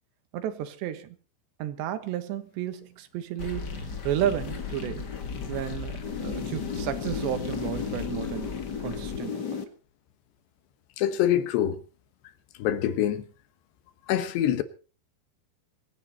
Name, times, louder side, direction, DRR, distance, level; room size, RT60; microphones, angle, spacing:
voice 1, 0.3-1.2 1.6-5.1 5.5-8.5 8.8-9.6, right 11 dB, 85° right, 3.7 m, -32 dB
sound 1, 3.4-9.6, left 6 dB, 60° left, 1.0 m, -34 dB
voice 2, 11.0-11.8 12.6-13.3 14.1-14.6, left 11 dB, 80° left, 3.3 m, -25 dB
26.0 x 11.0 x 4.2 m
omnidirectional pair, 4.9 m